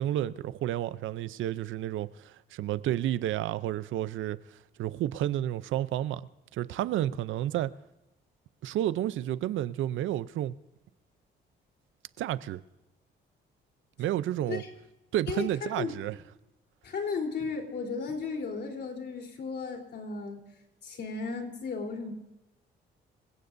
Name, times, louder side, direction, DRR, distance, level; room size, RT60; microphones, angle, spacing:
voice 1, 0.0-4.4 4.8-6.2 6.5-7.7 8.6-10.5 12.2-12.6 14.0-14.6 15.1-16.1, right 12 dB, 80° right, 0.6 m, -31 dB
voice 2, 15.3-15.9 16.8-20.4 20.8-22.1, left 4 dB, 60° left, 3.7 m, -35 dB
27.0 x 16.5 x 2.7 m
cardioid pair, 90°, 20 cm